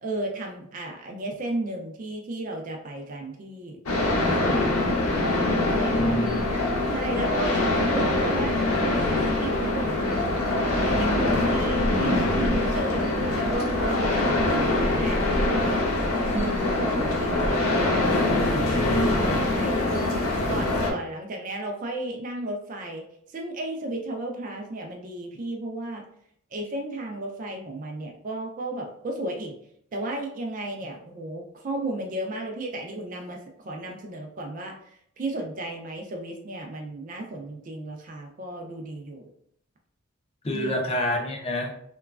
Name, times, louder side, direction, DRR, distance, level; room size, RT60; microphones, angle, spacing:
voice 1, 0.0-3.8 4.1-4.8 5.7-6.2 6.9-10.0 10.8-15.2 15.4-15.8 16.3-18.4 19.4-20.2 20.5-23.0 23.3-26.1 26.5-29.6 29.9-34.8 35.2-39.3 40.5-40.8, right 2 dB, 40° right, 2 dB, 0.3 m, -34 dB
sound 1, 3.9-20.9, left 2 dB, 85° left, 0.6 m, -24 dB
voice 2, 5.9-6.4 10.9-11.5 18.6-19.4 40.4-41.7, equal, 30° left, 2 dB, 0.4 m, -28 dB
3.0 x 2.2 x 2.3 m, 0.69 s
head